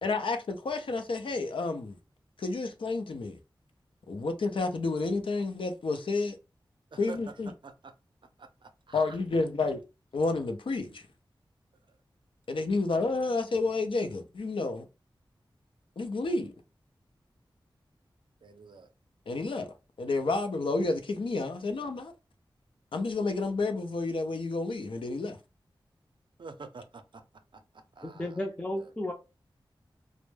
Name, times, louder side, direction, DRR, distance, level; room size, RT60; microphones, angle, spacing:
voice 1, 0.0-2.0 2.4-3.4 4.1-6.4 7.0-7.5 8.9-9.8 10.1-11.0 12.5-14.9 16.0-16.5 19.3-22.1 22.9-25.4, left 3 dB, 75° left, 0.5 m, -30 dB
voice 2, 8.4-9.2 11.9-12.0 18.4-18.9 26.4-27.2 27.5-27.6 27.9-28.5 28.7-28.9, right 4 dB, 65° right, 0.5 m, -47 dB
voice 3, 28.0-29.1, left 1 dB, 15° left, 0.4 m, -33 dB
2.2 x 2.0 x 3.1 m
wide cardioid pair, 60°, 9 cm